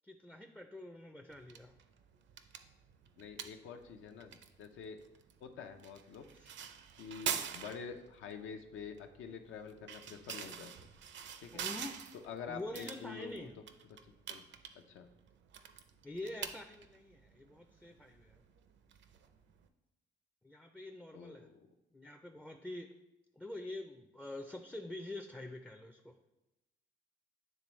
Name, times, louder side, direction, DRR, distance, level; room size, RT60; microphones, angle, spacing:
voice 1, 0.0-1.8 6.3-6.5 11.5-12.0 12.5-13.6 16.0-18.4 20.4-21.5 21.9-22.9 23.4-26.2, left 1 dB, 5° left, 5 dB, 0.4 m, -46 dB
sound 1, 1.3-19.7, right 8 dB, 65° right, 0.5 m, -46 dB
voice 2, 3.2-5.0 5.4-6.3 7.0-10.7 11.4-11.6 12.2-13.5 14.0-14.5 14.9-15.1 21.1-21.6, left 6 dB, 80° left, 6 dB, 0.6 m, -47 dB
9.0 x 3.4 x 3.1 m, 0.98 s
cardioid pair, 90°, 20 cm